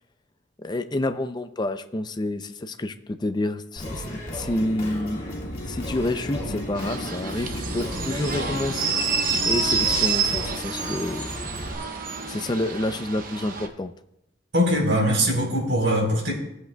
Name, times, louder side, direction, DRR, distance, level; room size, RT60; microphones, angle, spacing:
voice 1, 0.6-5.2 5.6-8.8 9.4-11.3 12.3-13.9, left 1 dB, 25° left, 10 dB, 0.5 m, -28 dB
Singing, 3.8-11.7, equal, 40° left, 2.7 m, -36 dB
sound 1, 4.6-10.1, left 1 dB, 60° left, 0.9 m, -36 dB
sound 2, 6.8-13.7, right 5 dB, 50° right, 1.0 m, -28 dB
voice 2, 14.5-16.4, equal, 75° right, -1 dB, 3.9 m, -22 dB
17.5 x 7.9 x 2.3 m, 0.81 s
head